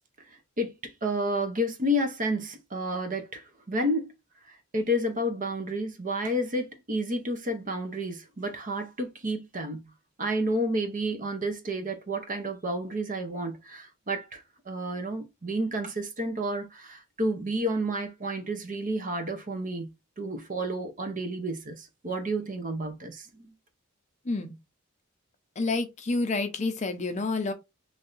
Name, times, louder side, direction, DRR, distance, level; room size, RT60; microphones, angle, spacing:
voice 1, 0.6-4.1 4.5-9.8 10.2-19.9 20.2-23.5, equal, 40° right, 0.8 m, -30 dB
voice 2, 24.2-24.5 25.6-27.5, left 3 dB, 35° left, 0.6 m, -29 dB
3.2 x 2.7 x 3.9 m
head